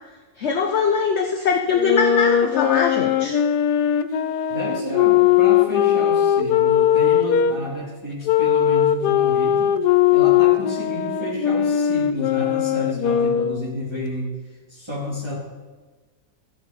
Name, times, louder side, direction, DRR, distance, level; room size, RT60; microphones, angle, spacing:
voice 1, 0.4-3.4, left 5 dB, 55° left, 4 dB, 0.9 m, -22 dB
sound 1, 1.7-7.6 8.3-13.7, left 10 dB, 85° left, 1.2 m, -19 dB
voice 2, 4.5-9.7 10.1-14.3 14.7-15.3, left 1 dB, 15° right, -8 dB, 3.1 m, -30 dB
14.0 x 6.1 x 5.3 m, 1.4 s
omnidirectional pair, 1.7 m